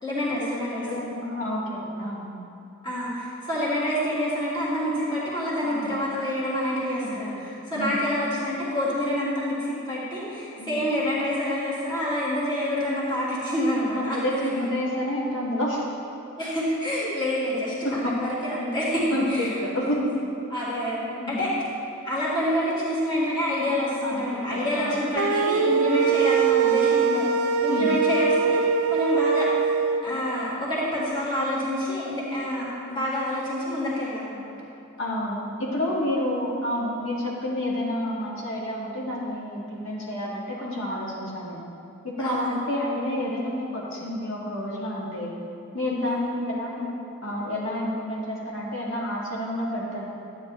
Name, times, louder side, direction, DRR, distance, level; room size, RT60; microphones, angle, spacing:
voice 1, 0.0-0.9 2.8-14.2 16.4-19.6 20.5-21.5 22.0-28.6 28.9-29.5 30.0-34.5 42.2-42.6 46.0-46.2, left 1 dB, 20° left, -8 dB, 1.9 m, -27 dB
voice 2, 0.9-2.3 5.6-6.0 7.0-7.3 7.7-8.0 10.6-10.8 13.9-15.8 17.8-18.1 19.1-20.2 21.2-21.5 24.0-25.0 27.7-28.0 35.0-41.6 42.0-45.3 45.7-46.9 47.2-50.0, left 1 dB, 60° left, -6 dB, 1.6 m, -29 dB
sound 1, 25.2-30.0, right 6 dB, 80° right, 0.4 m, -22 dB
12.5 x 9.3 x 3.1 m, 2.8 s
head